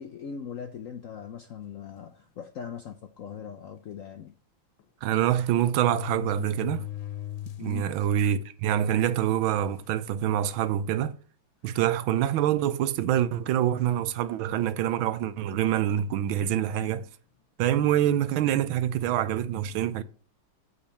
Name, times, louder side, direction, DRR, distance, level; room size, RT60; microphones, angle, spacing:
voice 1, 0.0-4.3 7.6-7.9, left 7 dB, 70° left, 0.7 m, -40 dB
sound 1, 2.0-2.2 3.0-3.1 3.4-3.5 4.8-4.9 5.6-7.8 8.3-8.4 9.2-9.3 9.7-10.0 10.7-10.8 12.1-12.9 13.9-14.1, left 12 dB, 90° left, 1.8 m, -40 dB
voice 2, 5.0-6.9 7.6-11.2 11.6-17.1 17.6-20.0, right 11 dB, 85° right, 1.5 m, -26 dB
8.6 x 4.2 x 7.1 m
omnidirectional pair, 2.1 m